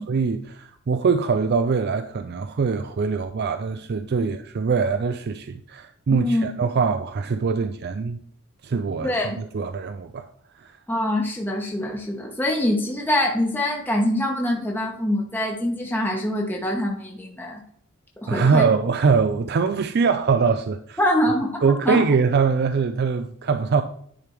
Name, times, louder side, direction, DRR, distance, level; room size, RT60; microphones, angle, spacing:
voice 1, 0.0-8.2 8.6-10.3 18.3-21.0 21.6-23.8, right 5 dB, 50° right, 0.4 m, -23 dB
voice 2, 6.1-6.5 9.0-9.4 10.9-17.6 18.2-18.6 21.0-21.5 21.8-22.0, left 1 dB, 10° left, 1.0 m, -24 dB
10.0 x 3.4 x 4.5 m
head